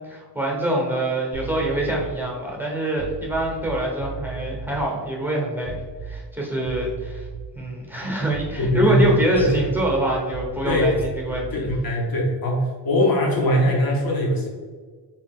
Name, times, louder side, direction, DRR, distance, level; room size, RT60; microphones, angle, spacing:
voice 1, 0.0-5.8 6.0-7.3 7.5-11.7, right 1 dB, 5° right, -2 dB, 0.9 m, -25 dB
sound 1, 1.3-2.3 2.9-4.9 5.6-6.4 6.7-7.6 8.3-11.9, right 6 dB, 70° right, 0.5 m, -36 dB
voice 2, 8.6-9.6 10.6-11.0 11.5-14.5, equal, 55° left, -2 dB, 1.1 m, -21 dB
3.5 x 2.9 x 3.6 m, 1.5 s
wide cardioid pair, 95°, 43 cm